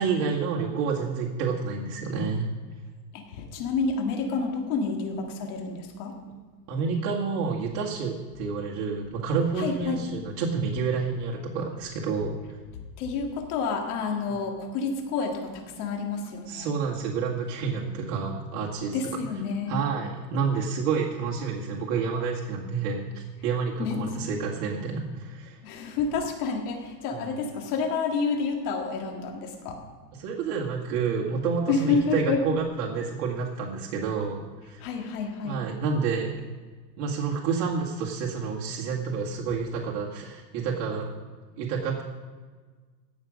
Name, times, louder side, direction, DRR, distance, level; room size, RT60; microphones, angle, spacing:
voice 1, 0.0-2.5 6.7-12.4 16.5-19.0 19.7-25.6 27.1-27.2 30.2-34.8 35.4-36.3 37.0-41.1 41.6-42.0, right 5 dB, 55° right, -3 dB, 2.0 m, -29 dB
voice 2, 3.1-6.2 9.6-10.0 12.7-16.7 18.9-19.8 23.8-24.0 25.6-29.8 31.7-32.4 34.8-35.6, left 4 dB, 65° left, 3 dB, 2.0 m, -29 dB
16.5 x 6.5 x 5.1 m, 1.4 s
supercardioid pair, 135°, 48 cm